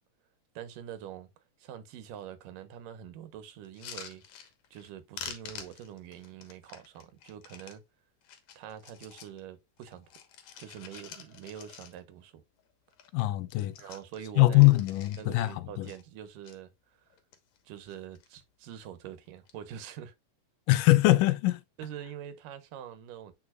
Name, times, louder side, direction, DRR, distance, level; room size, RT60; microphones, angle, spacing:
voice 1, 0.6-1.3 1.6-7.8 8.6-10.2 10.6-12.4 13.8-14.8 15.2-17.1 17.6-20.1 21.8-23.3, right 9 dB, 85° right, 2.7 m, -45 dB
sound 1, 3.6-4.9 5.1-7.8 8.2-9.4 9.8-12.2 12.6-12.7 12.9-13.2 13.5-15.5 15.8-16.6 17.1-17.6 17.9-18.4 19.3-19.5, left 8 dB, 65° left, 2.4 m, -47 dB
voice 2, 13.1-13.7 14.4-15.5 15.8-15.9 20.7-21.6, left 19 dB, 85° left, 2.2 m, -22 dB
9.4 x 4.8 x 2.4 m
omnidirectional pair, 3.8 m